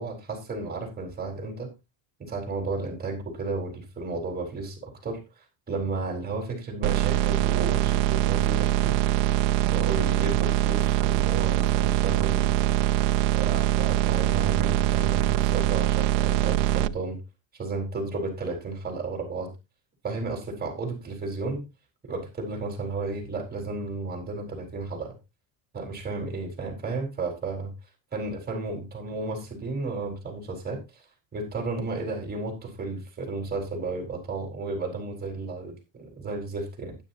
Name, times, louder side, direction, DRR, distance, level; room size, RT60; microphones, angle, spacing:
voice 1, 0.0-1.7 2.2-5.2 5.7-9.0 9.7-12.8 13.3-17.2 17.5-19.5 20.0-21.6 22.0-25.1 25.7-27.7 28.1-31.0 31.3-37.0, right 3 dB, 20° right, 2 dB, 4.6 m, -33 dB
sound 1, 6.8-16.9, right 14 dB, 75° right, 0.7 m, -23 dB
12.5 x 10.5 x 2.8 m, 0.25 s
cardioid pair, 135°, 45 cm